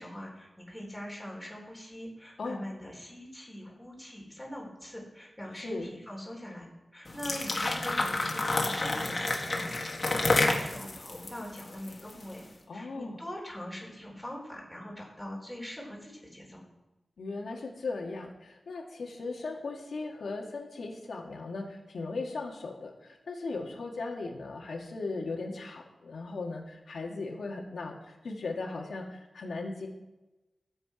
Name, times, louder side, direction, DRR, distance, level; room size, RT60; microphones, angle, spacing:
voice 1, 0.0-6.7 6.9-12.4 12.7-16.6, equal, 5° left, -2 dB, 3.7 m, -42 dB
voice 2, 5.6-6.0 12.7-13.2 17.2-29.9, left 3 dB, 85° left, 0 dB, 1.7 m, -38 dB
sound 1, 7.1-12.3, left 2 dB, 40° left, 1.7 m, -29 dB
14.0 x 7.6 x 5.0 m, 1.0 s
wide cardioid pair, 110°, 0 cm